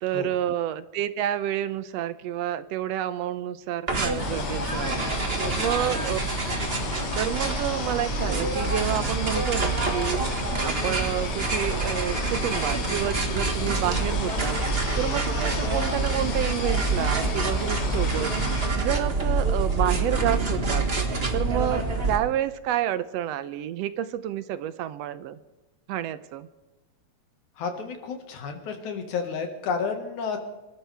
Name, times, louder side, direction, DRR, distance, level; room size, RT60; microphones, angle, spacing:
voice 1, 0.0-5.1 5.6-6.2 7.1-10.2 10.6-14.6 15.0-18.3 18.7-20.8 21.3-25.4 25.9-26.5, right 11 dB, 75° right, 14 dB, 1.7 m, -29 dB
sound 1, 3.9-22.2, right 3 dB, 25° right, 1.3 m, -27 dB
sound 2, 4.2-18.7, left 5 dB, 55° left, 2.7 m, -34 dB
voice 2, 27.6-30.4, left 5 dB, 85° left, 5 dB, 3.1 m, -31 dB
26.5 x 14.0 x 3.4 m, 1.1 s
omnidirectional pair, 3.3 m